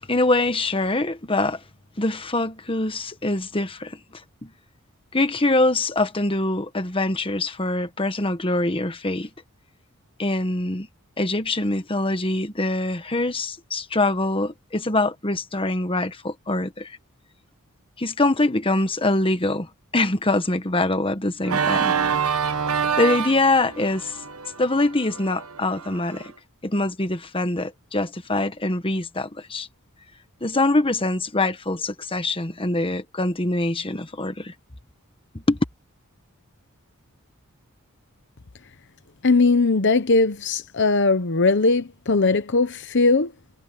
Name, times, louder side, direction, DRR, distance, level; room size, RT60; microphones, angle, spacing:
voice 1, 0.1-1.6 2.0-4.5 5.1-9.3 10.2-10.9 11.2-17.0 18.0-21.9 22.9-24.2 24.6-26.3 26.6-29.7 30.4-34.5 35.3-35.6, left 2 dB, 25° left, 1.4 m, -24 dB
Organ, 21.4-26.3, right 6 dB, 75° right, 1.2 m, -26 dB
voice 2, 39.2-43.3, left 3 dB, 55° left, 0.9 m, -19 dB
head